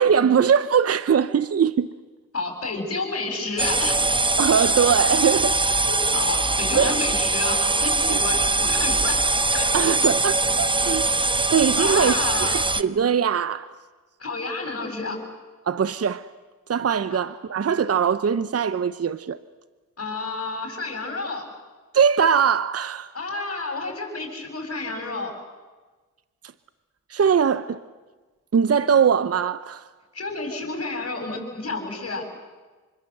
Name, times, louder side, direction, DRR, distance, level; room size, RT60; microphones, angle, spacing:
voice 1, 0.0-1.9 4.4-5.6 6.7-7.0 8.1-8.2 9.7-11.1 11.5-12.1 12.4-13.7 15.7-16.3 16.7-19.4 21.9-23.1 27.1-27.8 28.5-29.8, right 7 dB, 45° right, 0.9 m, -21 dB
voice 2, 2.3-4.0 5.8-9.3 9.5-9.7 11.8-12.6 14.2-15.2 17.1-17.2 20.0-21.4 23.1-25.3 30.1-32.4, left 3 dB, 45° left, 7.3 m, -30 dB
sound 1, 3.6-12.8, right 2 dB, 15° right, 0.8 m, -22 dB
27.0 x 25.0 x 7.9 m
cardioid pair, 65°, 34 cm